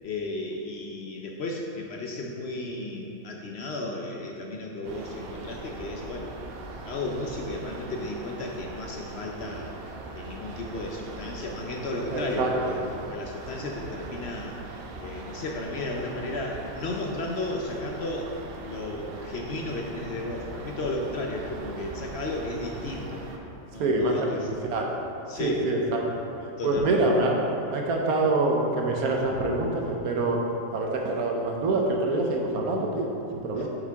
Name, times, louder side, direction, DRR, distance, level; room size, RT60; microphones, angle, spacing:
voice 1, 0.0-6.3 6.9-9.7 10.1-14.6 15.0-18.3 18.6-23.3 23.7-24.5 25.3-25.6 26.6-27.0 33.6-33.7, left 2 dB, 60° left, 1 dB, 0.8 m, -34 dB
sound 1, 4.8-23.4, right 3 dB, 55° right, 0.7 m, -41 dB
voice 2, 12.1-12.8 23.8-24.3 24.7-24.9 25.4-26.0 26.6-27.4 27.7-30.4 30.7-33.7, right 2 dB, 85° right, 0 dB, 1.3 m, -25 dB
8.2 x 5.6 x 3.5 m, 2.8 s
omnidirectional pair, 1.5 m